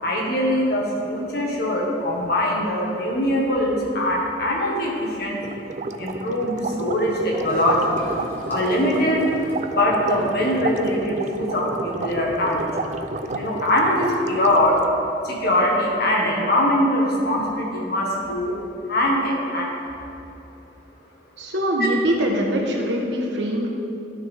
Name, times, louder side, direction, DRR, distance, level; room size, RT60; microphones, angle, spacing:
voice 1, 0.0-5.6 6.0-8.0 8.5-9.3 9.7-12.7 13.3-14.8 15.2-18.6 18.9-19.7 21.8-21.9, left 1 dB, 60° left, -2 dB, 1.7 m, -22 dB
sound 1, 5.4-14.8, right 3 dB, 45° right, 0.4 m, -31 dB
Gurgling / Toilet flush, 7.3-11.3, equal, 10° left, 1.7 m, -40 dB
voice 2, 21.4-23.7, equal, 90° right, 0 dB, 1.3 m, -23 dB
13.5 x 5.8 x 3.6 m, 2.8 s
head